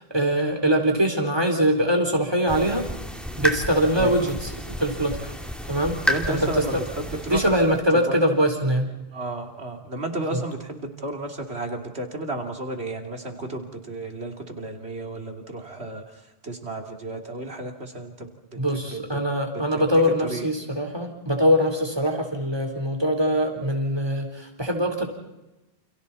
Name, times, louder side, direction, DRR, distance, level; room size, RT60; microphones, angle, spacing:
voice 1, 0.0-2.9 3.4-5.3 5.7-6.0 6.3-6.8 7.3-8.9 10.3-10.4 18.6-25.1, equal, 25° right, 2 dB, 4.1 m, -23 dB
sound 1, 2.5-7.8, equal, ahead, 2.5 m, -31 dB
voice 2, 6.0-7.6 8.1-8.2 9.1-16.0 16.4-18.3 18.9-19.2 19.7-19.8 20.2-20.4, right 2 dB, 80° right, 3 dB, 3.2 m, -33 dB
29.5 x 29.0 x 4.2 m, 0.99 s
omnidirectional pair, 1.1 m